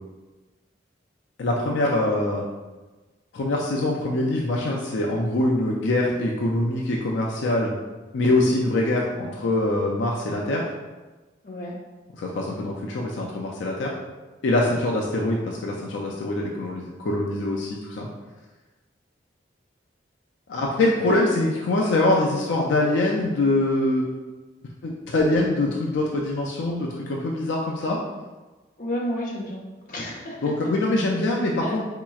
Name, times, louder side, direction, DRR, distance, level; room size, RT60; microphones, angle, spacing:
voice 1, 1.4-2.5 3.3-7.7 8.1-10.6 12.2-13.9 14.4-18.1 20.5-24.1 24.8-28.0 30.4-31.8, left 2 dB, 75° left, -2 dB, 0.4 m, -24 dB
voice 2, 28.8-29.6 29.9-30.4 31.6-31.8, equal, 45° left, -4 dB, 0.7 m, -31 dB
4.1 x 2.9 x 2.3 m, 1.2 s
head